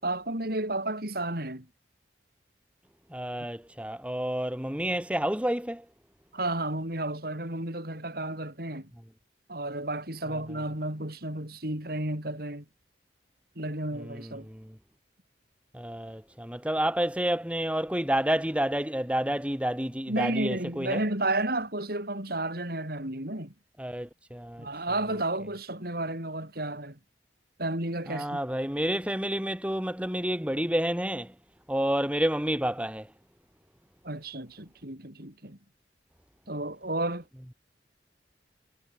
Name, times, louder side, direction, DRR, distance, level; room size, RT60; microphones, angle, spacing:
voice 1, 0.0-1.7 6.3-8.9 9.5-12.7 13.6-14.5 20.1-23.5 24.6-27.0 27.6-28.4 34.0-35.6 36.5-37.2, right 2 dB, 60° right, 7.0 m, -32 dB
voice 2, 3.1-5.8 10.3-10.4 14.0-14.7 15.7-21.0 23.8-24.7 28.1-31.3 31.7-33.1, right 1 dB, 5° right, 2.7 m, -29 dB
head